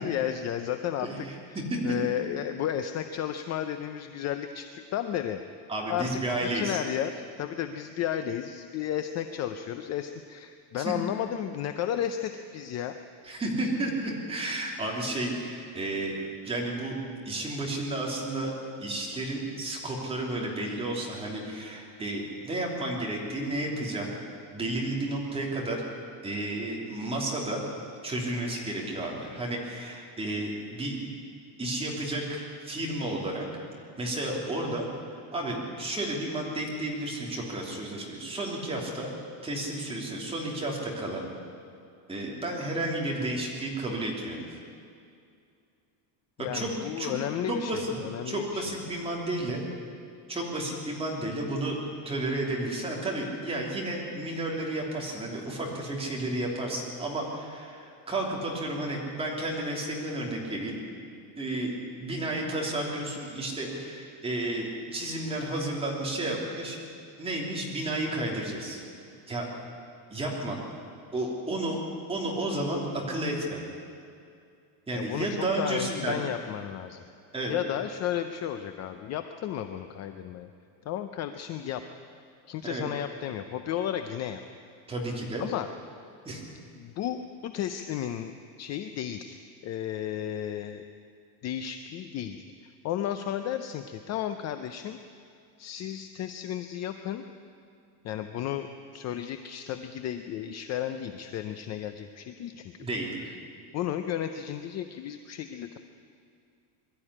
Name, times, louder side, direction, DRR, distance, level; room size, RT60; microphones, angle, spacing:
voice 1, 0.0-1.6 1.8-5.4 5.9-6.1 6.4-13.0 46.4-48.6 74.9-77.0 77.5-80.5 80.8-81.8 82.5-84.4 85.4-85.7 86.8-88.3 88.6-90.8 91.4-92.4 92.8-95.0 95.6-97.2 98.0-98.7 98.9-102.9 103.7-105.8, left 10 dB, 35° left, 8 dB, 0.6 m, -33 dB
voice 2, 5.7-6.8 10.7-10.9 13.2-16.2 16.4-17.0 17.2-18.5 18.8-24.1 24.5-25.8 26.2-27.6 28.0-31.0 31.6-33.5 34.0-34.8 35.1-39.1 39.4-41.2 42.1-44.4 46.4-47.1 47.5-47.9 48.2-49.6 50.3-60.8 61.4-66.8 67.2-68.8 69.3-69.5 70.1-70.6 71.1-71.8 72.1-73.6 74.9-76.2 77.3-77.5 82.6-82.9 84.9-85.4 86.2-86.4 102.8-103.3, right 1 dB, 10° right, -2 dB, 3.1 m, -32 dB
22.0 x 13.0 x 9.9 m, 2.4 s
cardioid pair, 170°, 50 cm